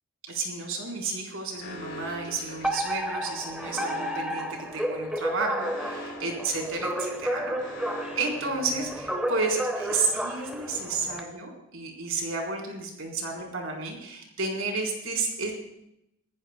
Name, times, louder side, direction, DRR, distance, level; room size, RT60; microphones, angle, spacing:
voice 1, 0.3-7.6 8.1-15.5, right 3 dB, 75° right, 0 dB, 3.9 m, -31 dB
Alarm, 1.6-9.4, equal, 60° left, 4.3 m, -43 dB
Alarm 2, 2.6-11.2, equal, 5° right, 1.0 m, -32 dB
24.5 x 15.0 x 2.2 m, 0.81 s
head